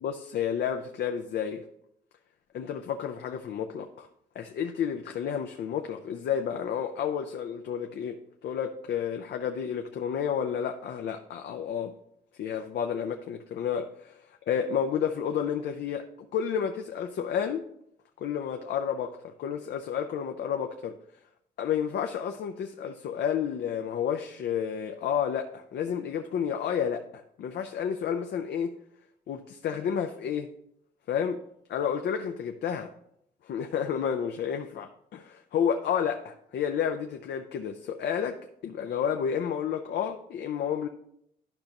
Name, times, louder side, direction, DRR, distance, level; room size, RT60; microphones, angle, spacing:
voice 1, 0.0-1.7 2.5-4.1 4.4-11.9 12.4-17.7 18.2-21.0 21.6-28.7 29.3-30.5 31.1-31.4 31.7-32.9 33.4-40.9, left 8 dB, 70° left, 5 dB, 0.6 m, -31 dB
12.0 x 5.2 x 3.0 m, 0.74 s
cardioid pair, 100°, 18 cm